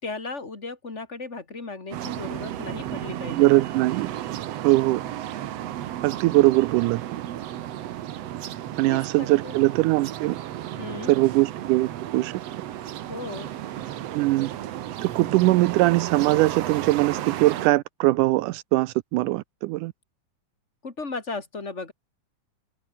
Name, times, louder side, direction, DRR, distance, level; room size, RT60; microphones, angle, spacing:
voice 1, 0.0-3.5 8.8-9.5 10.8-11.1 13.1-13.5 20.8-21.9, left 3 dB, 20° left, 2.8 m, -36 dB
sound 1, 1.9-17.7, right 12 dB, 65° right, 2.0 m, -33 dB
voice 2, 3.3-4.1 4.6-5.0 6.0-7.0 8.8-10.4 11.1-12.3 14.1-14.5 15.0-19.9, right 19 dB, 85° right, 2.2 m, -21 dB
open air
omnidirectional pair, 3.6 m